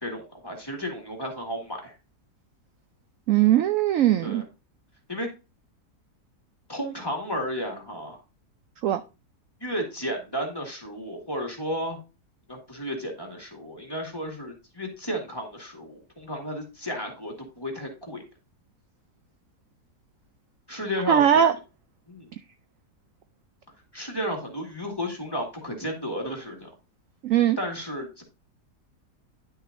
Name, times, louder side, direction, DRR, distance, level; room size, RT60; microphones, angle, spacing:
voice 1, 0.0-1.9 4.2-4.4 5.1-5.3 6.7-8.2 9.6-12.0 12.5-18.2 20.7-21.3 22.1-22.3 23.9-26.7 27.6-28.2, equal, 15° left, 1.9 m, -33 dB
voice 2, 3.3-4.4 8.8-9.0 21.1-21.5 27.2-27.6, right 11 dB, 70° right, 0.8 m, -20 dB
10.5 x 6.3 x 2.6 m
omnidirectional pair, 1.8 m